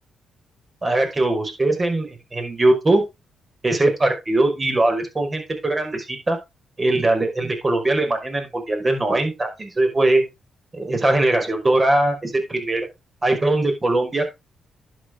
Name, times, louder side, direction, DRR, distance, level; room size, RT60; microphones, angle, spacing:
voice 1, 0.8-3.0 3.6-6.4 6.8-10.2 10.7-12.9 13.2-14.3, right 2 dB, 30° right, 5 dB, 5.3 m, -21 dB
11.0 x 7.7 x 3.7 m, 0.23 s
cardioid pair, 70°, 0 cm